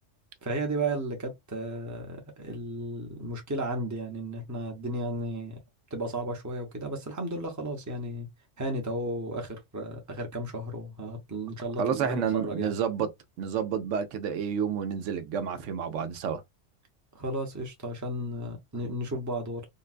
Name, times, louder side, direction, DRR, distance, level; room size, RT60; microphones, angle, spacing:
voice 1, 0.4-5.6 5.9-8.3 8.6-12.7 17.1-19.7, right 1 dB, 20° right, 0.7 m, -34 dB
voice 2, 11.8-13.1 13.4-16.4, right 7 dB, 80° right, 0.9 m, -29 dB
3.8 x 2.2 x 2.4 m
omnidirectional pair, 1.3 m